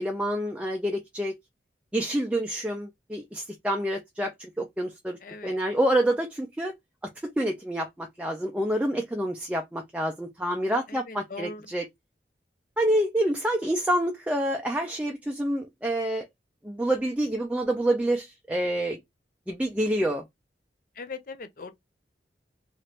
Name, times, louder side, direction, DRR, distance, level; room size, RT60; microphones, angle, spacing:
voice 1, 0.0-1.3 1.9-6.7 7.2-11.9 12.8-16.2 16.6-19.0 19.5-20.2, right 1 dB, 5° right, 0.4 m, -27 dB
voice 2, 5.2-5.6 10.9-11.6 21.0-21.7, left 4 dB, 50° left, 0.5 m, -40 dB
2.9 x 2.5 x 3.1 m
head